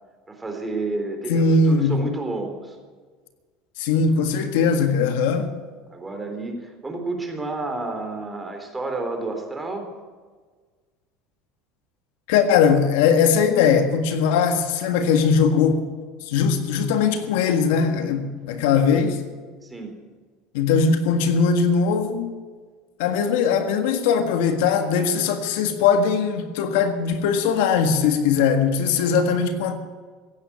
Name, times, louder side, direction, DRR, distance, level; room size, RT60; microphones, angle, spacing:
voice 1, 0.3-2.8 5.9-9.9 18.9-19.1 19.6-19.9, right 2 dB, 15° right, 3.4 m, -30 dB
voice 2, 1.3-2.0 3.8-5.5 12.3-15.8 16.3-19.2 20.5-22.3 23.0-29.8, left 6 dB, 80° left, 1.7 m, -20 dB
15.5 x 9.7 x 8.5 m
supercardioid pair, 115°, 0 cm